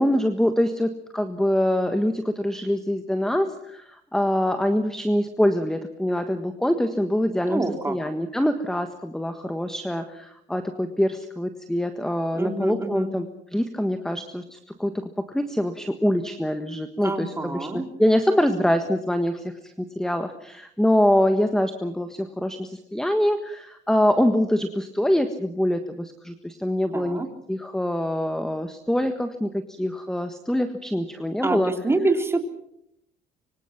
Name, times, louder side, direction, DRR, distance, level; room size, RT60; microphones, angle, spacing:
voice 1, 0.0-27.2 27.5-31.7, equal, 5° left, 8 dB, 1.5 m, -24 dB
voice 2, 7.5-7.9 12.3-13.1 17.0-17.9 26.9-27.3 31.4-32.4, right 2 dB, 15° right, 5 dB, 3.5 m, -26 dB
25.5 x 24.5 x 6.0 m, 0.76 s
cardioid pair, 110°, 17 cm